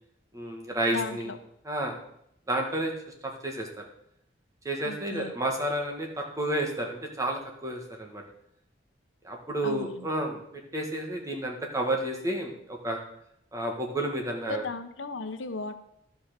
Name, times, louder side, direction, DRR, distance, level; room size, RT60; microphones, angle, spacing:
voice 1, 0.3-1.3 1.7-2.0 2.5-3.8 4.7-8.2 9.2-10.4 10.7-13.0 13.5-14.6, right 1 dB, 20° right, 1 dB, 1.8 m, -31 dB
voice 2, 0.9-1.4 4.8-5.3 9.6-10.1 14.5-15.8, left 3 dB, 85° left, 9 dB, 0.9 m, -35 dB
11.5 x 5.7 x 6.7 m, 0.75 s
head